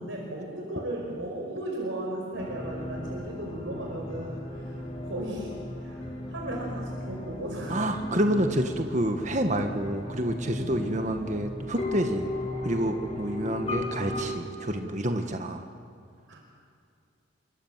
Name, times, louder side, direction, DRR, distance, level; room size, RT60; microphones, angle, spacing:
voice 1, 0.0-5.5 5.8-7.9 10.6-10.8 16.3-16.4, right 1 dB, 85° right, -1 dB, 5.1 m, -36 dB
sound 1, 2.3-14.2, left 1 dB, 35° left, 4.6 m, -36 dB
voice 2, 7.7-12.3 12.6-15.6, right 1 dB, 40° right, 5 dB, 1.6 m, -28 dB
27.0 x 24.5 x 7.5 m, 2.4 s
head